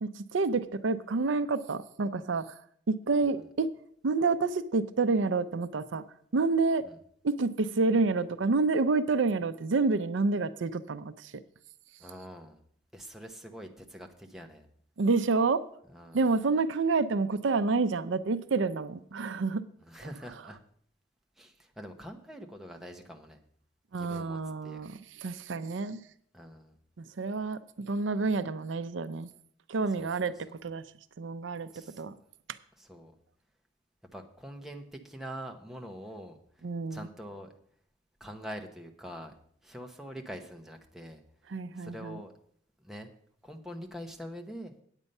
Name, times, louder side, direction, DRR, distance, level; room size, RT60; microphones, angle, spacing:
voice 1, 0.0-2.6 2.9-3.7 4.0-6.0 6.3-6.8 7.2-11.3 15.0-15.6 16.1-19.6 23.9-26.0 27.0-29.3 29.7-30.3 30.6-30.8 31.2-31.7 32.0-32.1 36.6-37.1 41.5-42.2, right 3 dB, 75° right, 13 dB, 0.5 m, -28 dB
voice 2, 12.0-12.6 12.9-14.7 15.9-16.2 19.8-20.6 21.4-23.4 23.9-24.8 26.3-26.7 30.0-30.6 31.7-32.0 32.8-33.2 34.1-37.5 38.2-39.3 39.6-41.2 41.7-42.3 42.8-43.1 43.4-44.7, equal, ahead, 3 dB, 0.9 m, -44 dB
9.0 x 8.2 x 5.4 m, 0.63 s
head